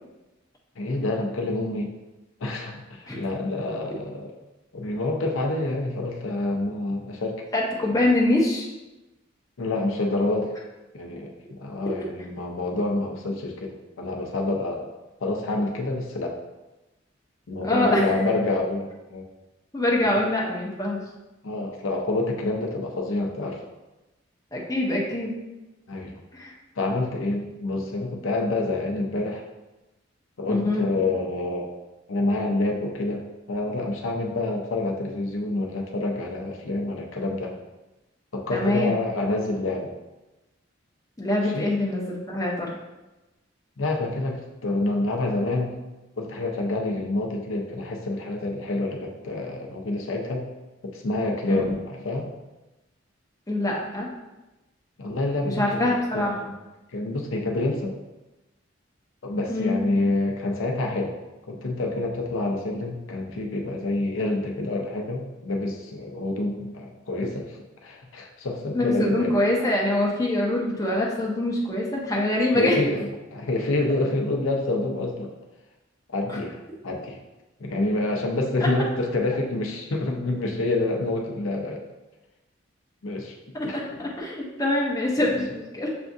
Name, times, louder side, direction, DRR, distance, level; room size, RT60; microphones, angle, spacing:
voice 1, 0.8-1.9 2.4-4.3 4.7-7.4 9.6-10.5 10.9-14.9 15.2-16.4 17.5-19.2 20.0-20.3 21.4-23.6 25.9-26.2 26.8-29.4 30.4-31.7 32.1-33.2 33.5-37.5 38.3-39.9 41.4-41.6 43.8-45.7 46.2-50.5 50.9-52.3 55.0-56.5 56.9-57.9 59.2-61.1 61.5-69.3 72.5-75.3 76.1-77.2 77.6-81.8 83.0-83.3 83.6-84.1 85.3-85.4, left 2 dB, 80° left, 1 dB, 0.6 m, -27 dB
voice 2, 7.5-8.7 17.5-18.0 19.7-21.0 24.5-25.3 26.3-26.5 30.5-30.8 38.5-38.9 41.2-42.7 51.5-51.6 53.5-54.1 55.6-56.3 59.5-59.8 68.7-72.8 76.3-76.4 83.7-85.9, left 1 dB, 15° left, -3 dB, 0.7 m, -24 dB
6.8 x 2.4 x 2.6 m, 1.0 s
head